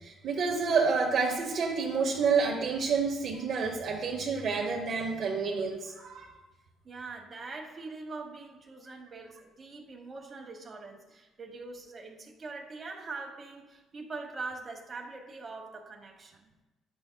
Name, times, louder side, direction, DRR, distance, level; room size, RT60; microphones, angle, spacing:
voice 1, 0.0-6.3, right 5 dB, 55° right, 1 dB, 0.8 m, -29 dB
voice 2, 6.8-16.5, right 3 dB, 30° right, 1 dB, 1.1 m, -43 dB
10.0 x 6.3 x 2.2 m, 1.1 s
cardioid pair, 120°, 0 cm